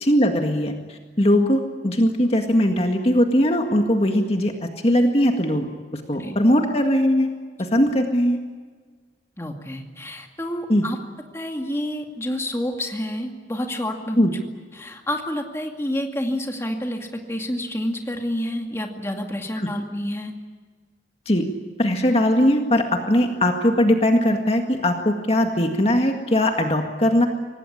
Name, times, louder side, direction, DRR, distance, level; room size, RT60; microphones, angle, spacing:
voice 1, 0.0-4.5 4.8-5.7 5.9-7.3 7.6-8.4 10.7-10.8 14.2-14.3 19.6-19.7 21.3-21.4 21.8-27.3, left 1 dB, 35° left, 4 dB, 1.9 m, -20 dB
voice 2, 9.4-11.0 11.3-14.2 14.7-20.3, left 1 dB, 15° left, 3 dB, 2.2 m, -29 dB
25.0 x 19.0 x 10.0 m, 1.5 s
head